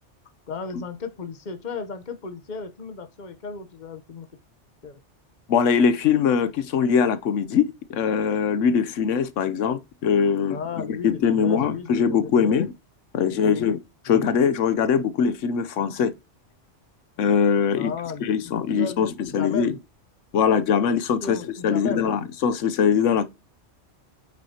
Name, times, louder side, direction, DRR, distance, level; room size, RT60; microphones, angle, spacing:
voice 1, 0.5-4.3 4.8-5.0 10.5-12.6 13.2-13.7 14.1-14.3 17.8-19.8 21.2-22.0, left 5 dB, 40° left, 1.0 m, -35 dB
voice 2, 5.5-10.6 11.0-12.7 13.1-13.8 14.1-16.1 17.2-17.9 18.2-19.7 20.3-21.4 21.6-23.3, left 7 dB, 90° left, 1.1 m, -22 dB
8.5 x 6.1 x 2.8 m
omnidirectional pair, 1.2 m